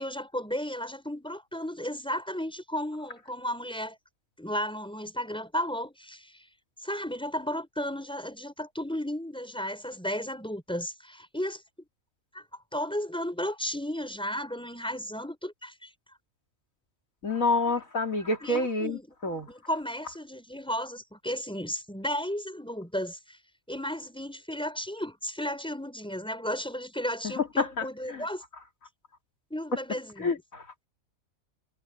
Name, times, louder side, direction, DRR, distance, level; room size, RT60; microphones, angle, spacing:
voice 1, 0.0-4.0 4.4-6.4 6.8-11.6 12.3-12.4 12.7-15.9 18.4-19.1 19.5-23.4 23.7-28.4 29.5-30.3, equal, 5° left, 5.3 m, -34 dB
voice 2, 17.2-19.5 27.2-28.2 30.2-30.7, left 2 dB, 80° left, 3.5 m, -28 dB
omnidirectional pair, 1.4 m